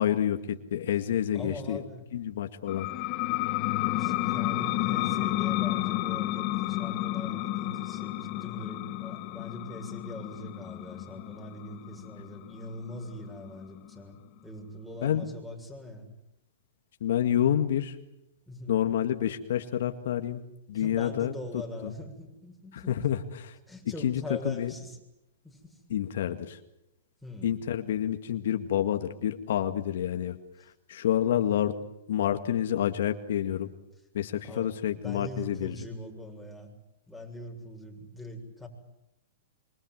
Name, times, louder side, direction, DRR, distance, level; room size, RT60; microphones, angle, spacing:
voice 1, 0.0-1.8 2.1-2.9 15.0-15.3 17.0-18.0 18.7-20.4 20.7-21.9 22.7-23.6 24.0-24.7 25.9-26.6 27.4-30.4 30.6-31.8 32.1-33.7 34.1-35.8, left 10 dB, 70° left, 7 dB, 2.0 m, -28 dB
voice 2, 1.3-2.1 3.8-14.2 14.4-16.1 18.5-18.7 20.7-22.9 23.7-25.0 25.4-25.8 27.2-27.5 34.5-36.7 37.1-38.7, left 1 dB, ahead, 5 dB, 6.8 m, -42 dB
sound 1, 2.7-13.9, left 18 dB, 40° left, 1.2 m, -31 dB
26.5 x 24.5 x 7.8 m, 0.88 s
hypercardioid pair, 135°, 0 cm